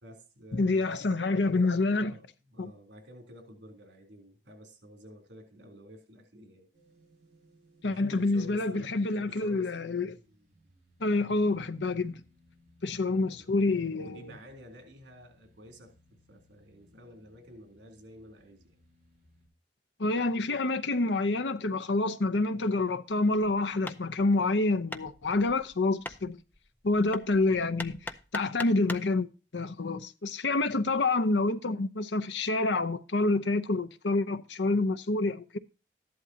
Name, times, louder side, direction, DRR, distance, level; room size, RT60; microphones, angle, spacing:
voice 1, 0.0-6.7 7.8-9.9 12.9-13.5 14.0-18.8 30.7-31.0, equal, 80° right, 3.5 m, -51 dB
voice 2, 0.5-2.1 2.6-2.7 7.8-10.1 11.0-12.2 12.8-14.3 20.0-26.4 26.8-35.6, left 2 dB, 85° left, 0.8 m, -28 dB
sound 1, 6.7-19.5, equal, 45° right, 7.8 m, -64 dB
Hammer, 23.4-29.2, left 2 dB, 10° left, 0.5 m, -43 dB
13.5 x 11.0 x 2.8 m
head